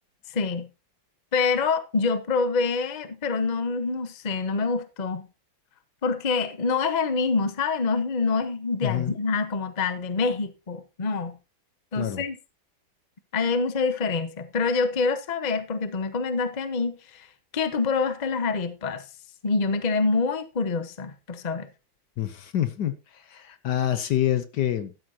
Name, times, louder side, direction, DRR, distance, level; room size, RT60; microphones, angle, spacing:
voice 1, 0.3-0.7 1.3-5.3 6.0-11.4 11.9-12.3 13.3-17.3 17.5-19.0 19.4-21.7, left 4 dB, 30° left, 0.9 m, -26 dB
voice 2, 8.8-9.1 12.0-12.2 22.2-25.0, left 11 dB, 65° left, 1.4 m, -27 dB
12.5 x 12.5 x 2.8 m
omnidirectional pair, 2.1 m